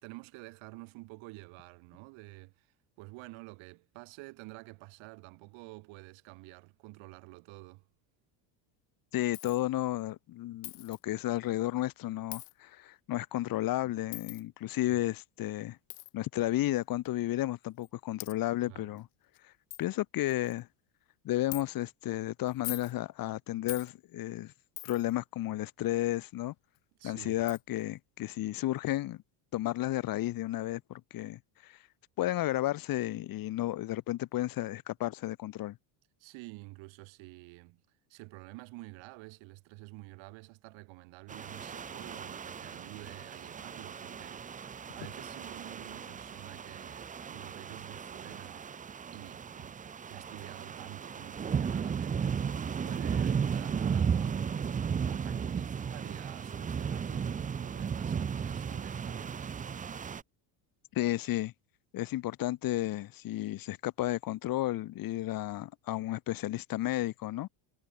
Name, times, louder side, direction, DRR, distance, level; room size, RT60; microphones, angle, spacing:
voice 1, 0.0-7.8 14.9-15.0 18.7-19.0 27.0-27.5 36.2-37.8 38.1-44.6 44.9-48.8 49.1-49.7 50.0-54.6 55.1-59.5, right 25 dB, 65° right, 5.0 m, -49 dB
voice 2, 9.1-15.8 16.1-19.1 19.4-19.5 19.8-20.7 21.2-24.5 24.8-26.5 27.0-29.2 29.5-31.8 32.2-35.8 60.9-61.5 61.9-67.5, left 15 dB, 45° left, 2.0 m, -33 dB
Coin (dropping), 9.3-9.6 10.6-11.0 12.3-12.5 14.1-14.4 15.9-16.1 17.0-17.1 17.8-17.9 18.2-18.3 19.0-19.1 19.3-19.4 19.7-19.8 20.3-20.6 21.5-21.6 22.5-22.9 23.7-23.9 24.8-25.1 26.8-26.9 27.5-27.6, left 30 dB, 60° left, 0.6 m, -41 dB
sound 1, 41.3-60.2, right 7 dB, 15° right, 0.8 m, -35 dB
cardioid pair, 160°, 49 cm